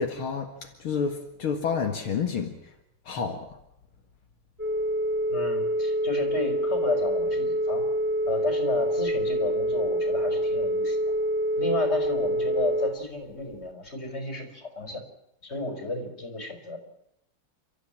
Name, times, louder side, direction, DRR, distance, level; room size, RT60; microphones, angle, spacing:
voice 1, 0.0-2.5 3.1-3.4, left 6 dB, 70° left, 3 dB, 2.7 m, -29 dB
Telephone, 4.6-12.9, equal, 5° right, 2.4 m, -26 dB
voice 2, 5.3-7.8 8.3-11.1 11.6-15.0 15.4-16.8, left 2 dB, 30° left, 5 dB, 4.9 m, -32 dB
29.5 x 14.0 x 8.9 m, 0.81 s
omnidirectional pair, 2.4 m